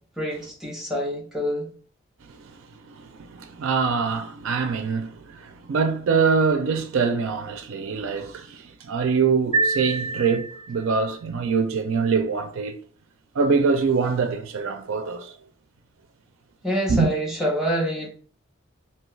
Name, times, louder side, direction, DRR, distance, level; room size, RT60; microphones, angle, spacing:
voice 1, 0.2-1.7 16.6-18.1, equal, ahead, 0.7 m, -26 dB
voice 2, 2.9-12.8 13.3-15.3 16.9-17.1, right 5 dB, 80° right, 0.4 m, -24 dB
sound 1, 9.5-11.0, right 3 dB, 30° left, 1.4 m, -26 dB
2.8 x 2.3 x 3.0 m
head